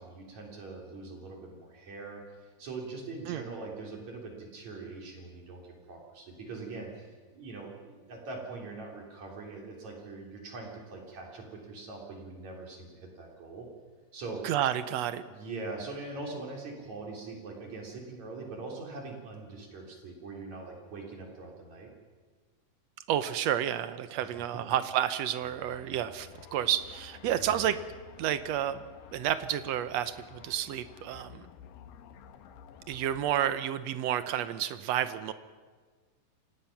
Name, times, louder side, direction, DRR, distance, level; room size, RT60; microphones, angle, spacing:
voice 1, 0.0-2.2 2.6-13.7 14.1-14.4 15.2-21.9 24.2-24.6 27.4-27.7, right 3 dB, 55° right, 0 dB, 4.5 m, -42 dB
voice 2, 14.4-15.2 23.1-27.8 28.2-28.8 29.1-31.4 32.9-35.3, right 11 dB, 75° right, 12 dB, 1.6 m, -30 dB
sound 1, 25.4-33.6, left 8 dB, 85° left, 2.7 m, -52 dB
26.5 x 18.0 x 5.9 m, 1.5 s
omnidirectional pair, 3.9 m